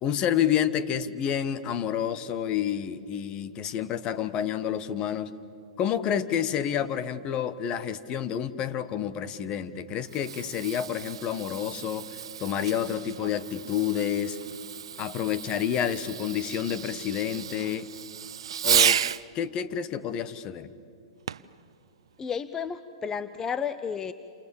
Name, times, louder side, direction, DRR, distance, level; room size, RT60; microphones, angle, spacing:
voice 1, 0.0-5.3 5.8-14.4 15.0-17.9 18.6-19.0 19.3-20.7, left 9 dB, 35° left, 13 dB, 1.4 m, -29 dB
Fireworks, 9.9-19.2 21.3-21.6 22.3-22.4, right 9 dB, 75° right, 0.6 m, -32 dB
voice 2, 22.2-24.1, left 7 dB, 20° left, 13 dB, 0.8 m, -32 dB
29.0 x 28.0 x 7.2 m, 2.4 s
hypercardioid pair, 120°, 3 cm